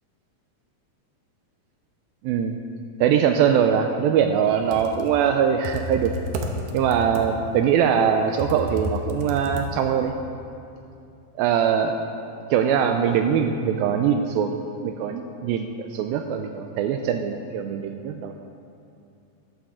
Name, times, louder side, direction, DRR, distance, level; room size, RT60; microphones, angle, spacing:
voice 1, 2.2-2.6 3.0-6.1 6.7-10.1 11.4-12.0 12.5-18.4, right 8 dB, 90° right, 5 dB, 2.1 m, -22 dB
Computer keyboard, 4.5-10.1, equal, 70° right, 2.6 m, -32 dB
15.5 x 13.0 x 3.7 m, 2.6 s
omnidirectional pair, 4.8 m